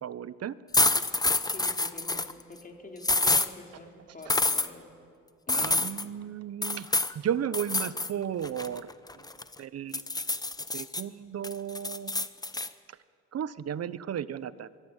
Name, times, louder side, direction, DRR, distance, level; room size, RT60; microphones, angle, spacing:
voice 1, 0.0-0.6 5.5-6.9 7.1-8.9 9.1-9.3 9.6-10.0 10.7-12.2 12.9-13.0 13.3-14.7, right 9 dB, 55° right, 16 dB, 1.0 m, -34 dB
sound 1, 0.7-2.3 3.0-3.5 4.3-4.7 5.5-6.0 6.6-7.1 7.5-8.1 8.4-9.5 9.9-11.0 11.4-12.7, left 2 dB, 15° left, 1.0 m, -27 dB
voice 2, 1.5-4.9 5.5-5.8, left 2 dB, 30° left, 2 dB, 4.2 m, -46 dB
25.0 x 23.5 x 8.2 m, 2.2 s
cardioid pair, 90°, 30 cm